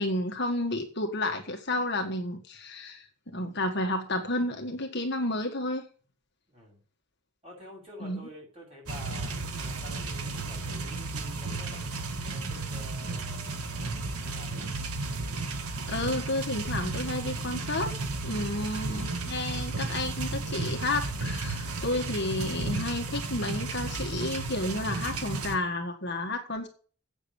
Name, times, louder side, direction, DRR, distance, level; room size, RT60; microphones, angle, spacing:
voice 1, 0.0-5.8 8.0-8.2 15.9-17.9 18.2-26.7, left 1 dB, 50° left, 3 dB, 1.6 m, -31 dB
voice 2, 6.5-6.8 7.4-11.9 12.2-14.7, equal, 25° right, -2 dB, 6.9 m, -49 dB
sound 1, 8.9-25.6, right 3 dB, 85° right, 1.5 m, -33 dB
8.4 x 7.3 x 8.6 m, 0.42 s
head